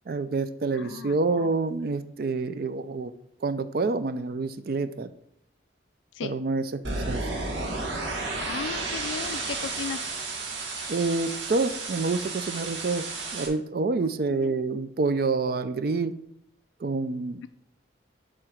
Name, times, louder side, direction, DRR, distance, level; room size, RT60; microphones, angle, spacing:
voice 1, 0.1-3.1 3.4-5.1 6.2-7.2 10.9-13.0 13.3-16.1 16.8-17.4, right 3 dB, 55° right, 11 dB, 0.4 m, -27 dB
voice 2, 0.7-1.5 6.1-6.4 8.4-10.1 14.0-14.5, left 6 dB, 85° left, 11 dB, 0.3 m, -36 dB
sound 1, 6.8-13.5, right 3 dB, 85° right, 1.8 m, -32 dB
7.6 x 3.7 x 6.4 m, 0.73 s
head